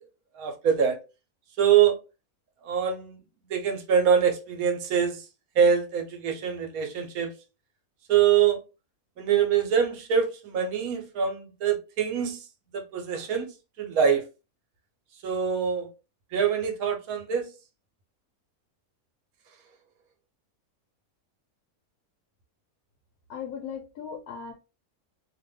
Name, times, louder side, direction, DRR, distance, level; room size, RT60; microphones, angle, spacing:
voice 1, 0.4-1.0 1.6-2.0 2.6-3.2 3.5-5.2 5.6-7.3 8.1-8.6 9.2-12.4 12.7-13.5 13.8-14.3 15.2-15.9 16.3-17.5, right 7 dB, 75° right, 1.1 m, -24 dB
voice 2, 23.3-24.5, left 7 dB, 85° left, 1.1 m, -37 dB
2.6 x 2.5 x 3.3 m
omnidirectional pair, 1.6 m